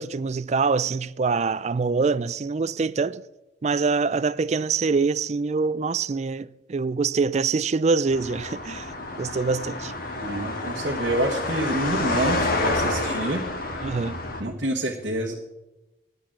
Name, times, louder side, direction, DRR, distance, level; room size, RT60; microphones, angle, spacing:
voice 1, 0.0-3.2 3.6-8.9 9.2-9.9 13.8-14.2, right 4 dB, 35° right, 0.3 m, -24 dB
sound 1, 8.1-14.4, left 2 dB, 50° left, 1.6 m, -29 dB
voice 2, 10.1-13.4 14.4-15.3, right 1 dB, 60° right, 1.3 m, -27 dB
10.0 x 9.3 x 7.2 m
head